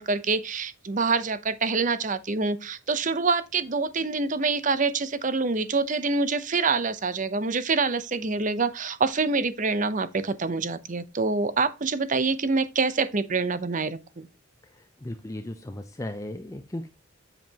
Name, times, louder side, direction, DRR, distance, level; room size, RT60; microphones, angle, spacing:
voice 1, 0.0-14.3, right 4 dB, 40° right, 0.7 m, -26 dB
voice 2, 14.7-16.9, left 1 dB, 15° left, 0.6 m, -36 dB
7.6 x 7.5 x 2.9 m
head